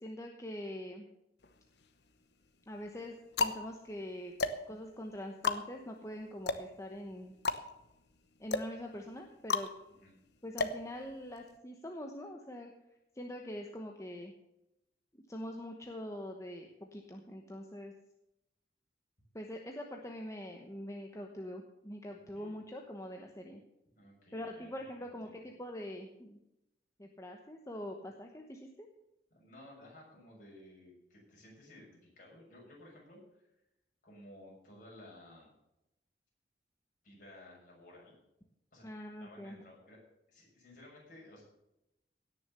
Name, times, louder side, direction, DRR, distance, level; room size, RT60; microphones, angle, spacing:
voice 1, 0.0-1.1 2.7-4.3 4.7-7.3 8.4-9.7 10.4-12.7 13.2-14.3 15.1-17.9 19.3-23.6 24.3-26.4 27.0-28.9 38.8-39.6, equal, 15° left, 2 dB, 1.1 m, -44 dB
sound 1, 1.4-2.1 2.8-11.6, left 3 dB, 70° left, 1.0 m, -36 dB
voice 2, 22.1-22.6 24.0-24.7 25.0-25.4 29.3-33.4 34.0-35.5 37.0-38.1 38.7-40.0 40.3-41.4, left 1 dB, 50° left, -3 dB, 6.6 m, -56 dB
17.5 x 6.7 x 6.8 m, 0.87 s
head